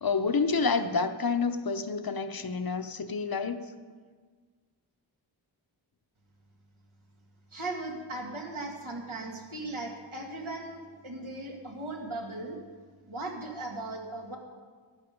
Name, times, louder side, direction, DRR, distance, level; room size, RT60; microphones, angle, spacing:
voice 1, 0.0-3.7, left 4 dB, 50° left, 9 dB, 0.7 m, -28 dB
voice 2, 7.5-12.6 13.1-14.4, right 2 dB, 80° right, 0 dB, 2.2 m, -38 dB
12.5 x 10.5 x 5.2 m, 1.5 s
wide cardioid pair, 85°, 48 cm